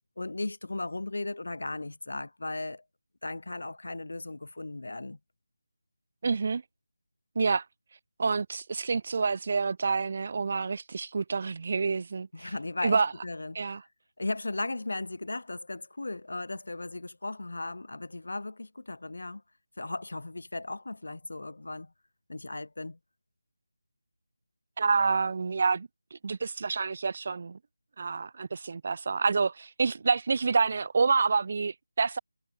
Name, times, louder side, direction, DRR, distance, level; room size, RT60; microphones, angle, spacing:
voice 1, 0.2-2.8 3.2-5.2 12.3-13.8 14.2-19.4 19.8-21.9 22.3-23.0, left 2 dB, 70° left, 1.3 m, -36 dB
voice 2, 6.2-6.6 7.4-7.6 8.2-12.5 12.8-13.1 13.6-13.8 24.8-27.6 28.0-32.2, right 4 dB, 35° right, 0.4 m, -28 dB
figure-of-eight pair, 170°, 0 cm